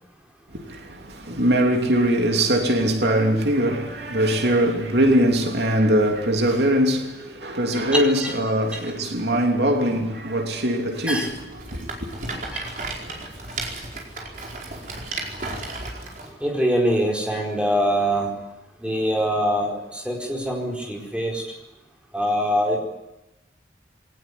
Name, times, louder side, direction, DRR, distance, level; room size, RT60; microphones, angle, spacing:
voice 1, 0.5-11.3 11.7-11.9, right 1 dB, 75° right, 3.1 m, -21 dB
voice 2, 7.9-8.3 8.7-8.9 11.1-11.3 12.5-12.7 16.4-18.3 18.8-21.4 22.1-22.8, equal, 5° right, 4.5 m, -24 dB
Rattle, 11.2-16.3, right 2 dB, 50° right, 4.8 m, -34 dB
22.5 x 18.5 x 9.9 m
head